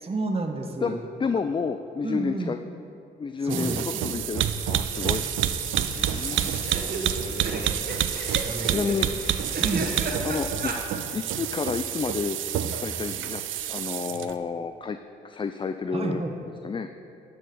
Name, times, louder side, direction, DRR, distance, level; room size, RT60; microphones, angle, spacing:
voice 1, 0.0-1.0 1.4-1.5 2.0-2.6 3.4-4.2 6.0-7.8 8.4-8.9 9.6-10.0 15.9-16.3, right 2 dB, 30° right, 3 dB, 0.9 m, -32 dB
voice 2, 0.8-2.6 3.2-5.3 6.0-6.5 8.7-9.1 10.2-12.4 12.8-13.4 13.7-15.0 15.2-16.2 16.6-16.9, left 5 dB, 25° left, 9 dB, 0.3 m, -30 dB
sound 1, 3.5-14.3, right 10 dB, 70° right, 0.4 m, -28 dB
sound 2, 4.5-5.0 5.3-5.4 5.6-5.7 6.3-10.8, right 3 dB, 50° right, 1.1 m, -34 dB
Crackle, 5.3-10.8 11.0-11.2, left 5 dB, 80° left, 0.9 m, -44 dB
11.0 x 4.4 x 5.2 m, 2.7 s
supercardioid pair, 45°, 21 cm